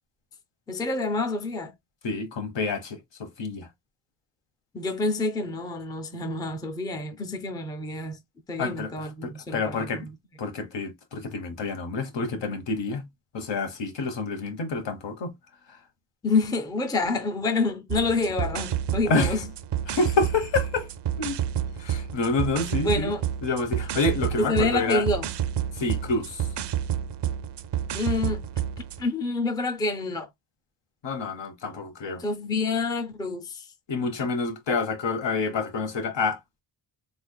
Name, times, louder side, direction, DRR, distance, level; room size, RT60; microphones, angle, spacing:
voice 1, 0.7-1.7 4.7-8.2 8.5-10.2 16.2-19.5 22.7-23.2 24.4-25.3 27.9-28.4 29.0-30.3 32.2-33.7, left 3 dB, 10° left, 0.4 m, -27 dB
voice 2, 2.0-3.7 8.6-8.9 9.2-10.1 10.4-13.1 13.3-15.3 19.0-19.4 19.9-20.9 21.2-21.4 21.8-23.1 23.4-25.1 25.8-26.4 31.0-32.2 33.9-36.6, left 3 dB, 75° left, 1.1 m, -28 dB
sound 1, 17.9-29.0, right 10 dB, 65° right, 0.5 m, -30 dB
3.8 x 3.3 x 2.3 m
wide cardioid pair, 175°, 44 cm